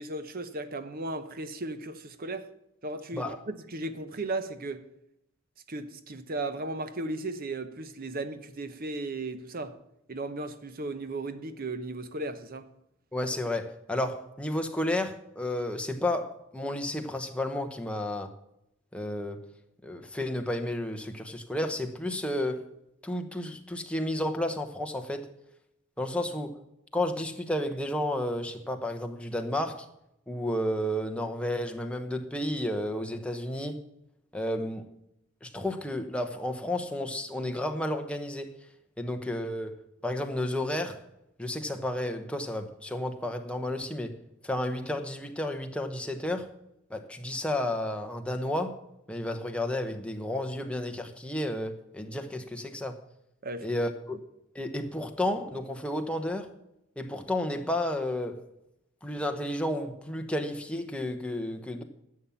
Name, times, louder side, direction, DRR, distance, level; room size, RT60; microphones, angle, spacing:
voice 1, 0.0-2.5 2.8-4.9 5.7-9.8 10.1-12.7 53.4-53.8, right 2 dB, 45° right, 0.9 m, -36 dB
voice 2, 13.1-18.3 18.9-19.5 19.8-22.6 23.0-25.3 26.0-26.6 26.9-29.9 30.3-33.8 34.3-34.9 35.4-38.5 39.0-41.0 41.4-44.2 44.4-46.5 46.9-48.8 49.1-53.0 53.6-54.2 54.5-56.5 57.0-58.4 59.0-61.8, left 1 dB, 5° left, 1.0 m, -32 dB
11.0 x 7.3 x 7.2 m
head